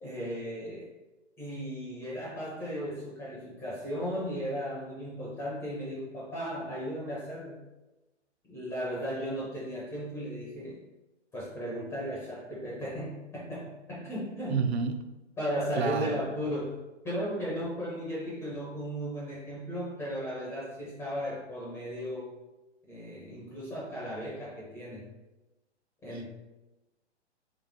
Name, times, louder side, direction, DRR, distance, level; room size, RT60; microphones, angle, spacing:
voice 1, 0.0-0.9 1.4-7.6 8.5-10.8 11.3-14.6 15.4-16.8 17.0-22.3 22.9-25.1 26.0-26.3, equal, 5° left, -6 dB, 0.5 m, -36 dB
voice 2, 14.5-15.0 15.8-16.2 26.1-26.3, right 5 dB, 65° right, 8 dB, 0.5 m, -30 dB
3.9 x 2.6 x 3.7 m, 1.1 s
hypercardioid pair, 135°, 35 cm